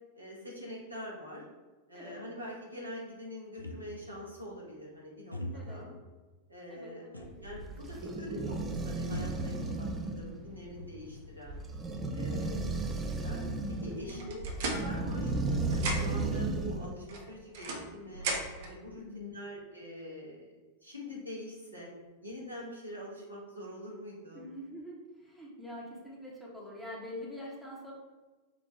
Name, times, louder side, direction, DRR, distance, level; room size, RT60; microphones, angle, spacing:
voice 1, 0.1-1.4 1.9-5.4 5.7-5.9 6.5-7.0 7.4-11.6 12.1-12.6 12.9-13.4 13.8-14.4 14.7-18.3 18.6-20.5 20.8-21.9 22.2-24.5, equal, 85° right, -5 dB, 1.2 m, -44 dB
sound 1, 3.6-4.2 5.3-5.9 7.1-7.6 7.9-8.0 9.1-10.1 10.5-11.3, left 1 dB, 85° left, 0.4 m, -42 dB
voice 2, 5.5-5.9 6.7-7.3 12.3-12.7 14.0-14.4 19.0-19.4 24.3-27.9, left 1 dB, 5° left, -5 dB, 1.1 m, -45 dB
sound 2, 7.2-16.9, right 2 dB, 20° right, 0.4 m, -34 dB
sound 3, 14.1-15.5 15.7-16.3 17.1-18.7, right 2 dB, 55° right, 0.7 m, -37 dB
5.2 x 2.4 x 3.3 m, 1.3 s
figure-of-eight pair, 90°, 0 cm